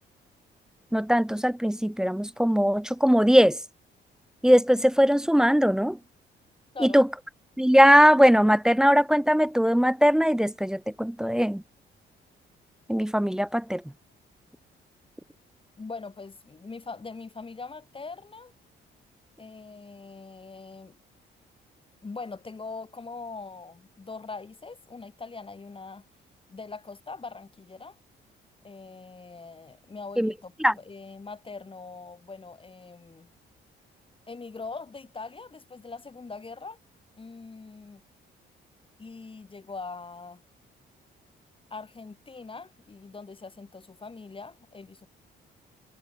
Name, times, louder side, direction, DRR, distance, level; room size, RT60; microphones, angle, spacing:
voice 1, 0.9-3.6 4.4-6.0 6.8-7.1 7.6-11.6 12.9-13.8 30.2-30.3 30.6-30.7, equal, 5° right, 0.4 m, -20 dB
voice 2, 15.8-18.5 19.4-21.0 22.0-26.0 26.5-28.0 28.6-33.3 34.3-36.8 37.2-38.0 39.0-40.4 41.7-45.1, left 4 dB, 25° left, 5.1 m, -42 dB
cardioid pair, 90°, 20 cm